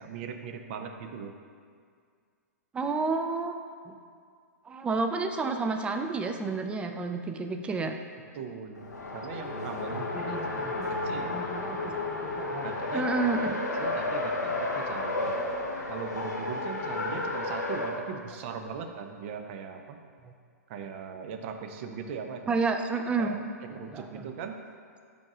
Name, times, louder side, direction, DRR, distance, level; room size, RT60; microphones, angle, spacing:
voice 1, 0.0-1.3 8.3-11.4 12.6-13.3 13.8-15.3 15.9-20.0 20.7-22.6 23.2-23.4 23.7-24.6, right 6 dB, 45° right, 5 dB, 0.6 m, -39 dB
voice 2, 2.7-3.6 3.9-4.0 4.6-8.0 9.9-10.9 11.3-13.6 17.1-17.2 22.5-23.3 23.9-24.2, right 3 dB, 10° right, 5 dB, 0.4 m, -31 dB
Race car auto racing, 8.7-18.0, left 2 dB, 90° left, 1.0 m, -32 dB
5.2 x 4.7 x 5.9 m, 2.1 s
hypercardioid pair, 120°, 9 cm